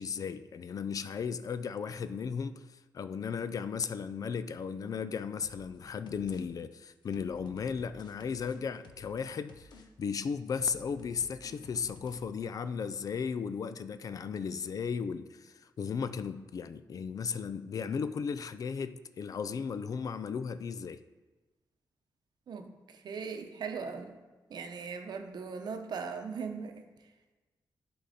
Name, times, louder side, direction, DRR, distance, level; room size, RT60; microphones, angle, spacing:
voice 1, 0.0-2.6 2.9-9.7 10.0-21.0, left 6 dB, 50° left, 12 dB, 0.4 m, -35 dB
sound 1, 5.4-5.8 6.1-6.4 6.7-9.2 9.5-9.9 10.1-12.2, left 3 dB, 80° left, 0.9 m, -54 dB
voice 2, 22.5-24.1 24.5-26.8, right 5 dB, 70° right, 5 dB, 0.8 m, -39 dB
11.5 x 4.0 x 4.2 m, 1.2 s
wide cardioid pair, 125°, 7 cm